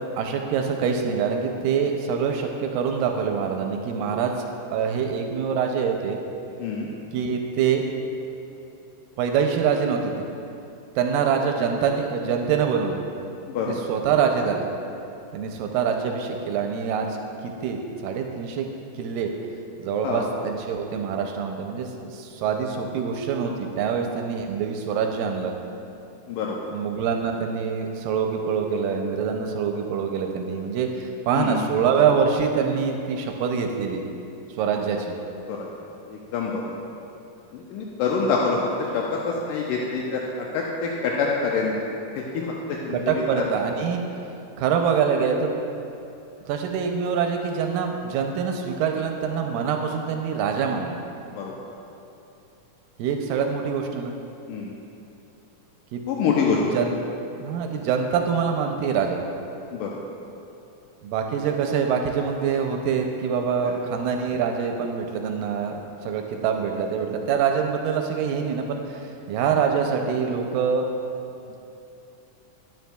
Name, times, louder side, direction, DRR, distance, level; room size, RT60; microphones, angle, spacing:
voice 1, 0.2-4.3 4.7-6.2 7.1-7.9 9.2-10.2 11.0-13.0 13.7-14.7 15.3-17.1 17.4-18.7 18.9-19.3 19.8-25.6 26.7-34.0 34.5-35.2 42.9-44.0 44.6-45.5 46.5-51.0 53.0-54.1 55.9-56.0 56.6-57.0 57.4-59.2 61.0-70.9 71.5-71.6, right 6 dB, 85° right, 3 dB, 2.2 m, -25 dB
voice 2, 13.5-13.8 20.0-20.3 23.8-23.9 26.3-26.6 31.3-31.6 35.5-35.7 36.1-36.7 37.5-41.7 42.2-43.2 51.4-51.5 54.5-54.7 56.1-56.6 59.7-60.0, left 5 dB, 80° left, -2 dB, 2.2 m, -26 dB
12.0 x 8.8 x 2.3 m, 2.8 s
omnidirectional pair, 3.9 m